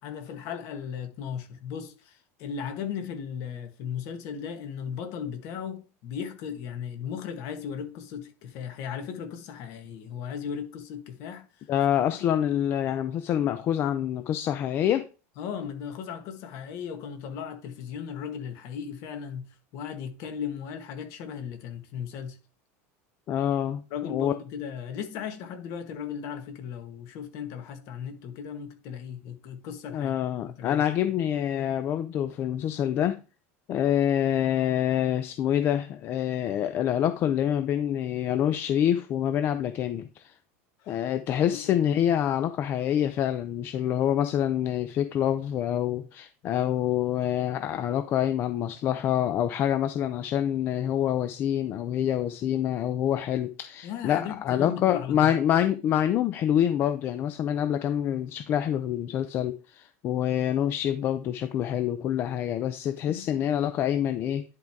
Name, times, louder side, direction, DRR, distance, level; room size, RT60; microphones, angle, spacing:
voice 1, 0.0-11.7 12.1-12.4 15.4-22.4 23.9-30.8 40.8-41.0 41.3-41.8 53.8-55.4 63.0-63.5, left 7 dB, 45° left, 1.6 m, -37 dB
voice 2, 11.7-15.1 23.3-24.3 29.9-33.2 33.7-40.3 40.9-64.4, left 10 dB, 30° left, 0.5 m, -26 dB
10.5 x 4.6 x 3.6 m
supercardioid pair, 165°, 7 cm